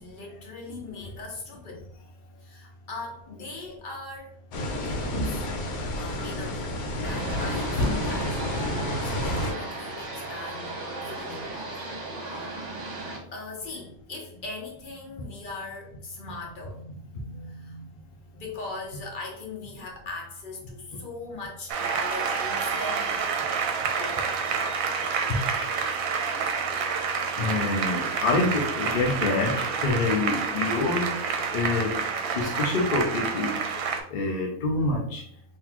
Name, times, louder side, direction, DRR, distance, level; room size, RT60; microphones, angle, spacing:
voice 1, 0.0-1.9 2.4-4.4 4.8-5.5 6.0-6.7 7.0-10.7 11.0-11.7 12.3-12.4 13.3-23.2, left 3 dB, 45° left, 0 dB, 0.8 m, -40 dB
sound 1, 4.5-9.5, left 1 dB, 80° left, 1.1 m, -29 dB
sound 2, 7.0-13.2, right 2 dB, 55° right, 1.2 m, -36 dB
Applause, 21.7-34.0, right 6 dB, 75° right, 1.0 m, -28 dB
voice 2, 25.3-26.0 27.4-32.0 32.3-35.2, left 3 dB, 60° left, 0 dB, 0.5 m, -27 dB
3.8 x 2.8 x 2.9 m, 0.63 s
omnidirectional pair, 1.5 m